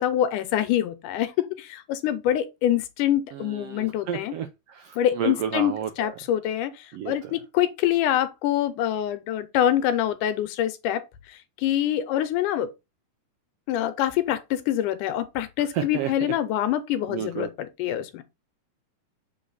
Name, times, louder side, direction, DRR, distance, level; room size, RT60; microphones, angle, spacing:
voice 1, 0.0-4.3 5.0-12.7 13.7-18.2, left 11 dB, 90° left, 2.3 m, -25 dB
voice 2, 3.3-5.9 6.9-7.1 15.7-16.3 17.1-17.5, right 9 dB, 85° right, 1.3 m, -31 dB
7.1 x 3.9 x 3.9 m
omnidirectional pair, 3.6 m